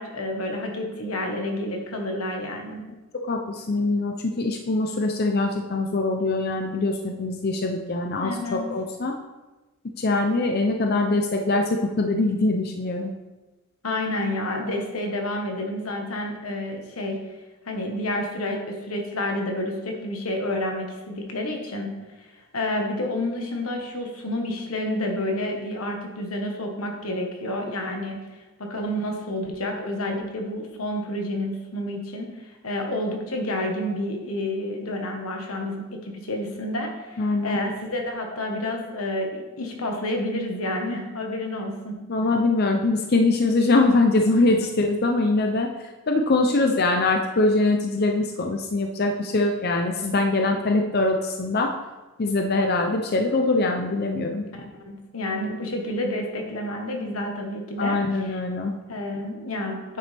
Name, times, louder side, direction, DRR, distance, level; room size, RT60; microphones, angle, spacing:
voice 1, 0.0-2.9 8.2-8.7 13.8-17.2 17.6-22.3 22.5-28.2 28.6-42.3 54.5-58.3 58.9-60.0, left 1 dB, 90° left, 2 dB, 1.4 m, -29 dB
voice 2, 3.1-9.1 10.0-13.1 37.2-37.6 42.1-51.7 52.2-54.4 57.8-58.8, left 2 dB, 50° left, 3 dB, 0.6 m, -23 dB
9.2 x 6.9 x 3.4 m, 1.1 s
head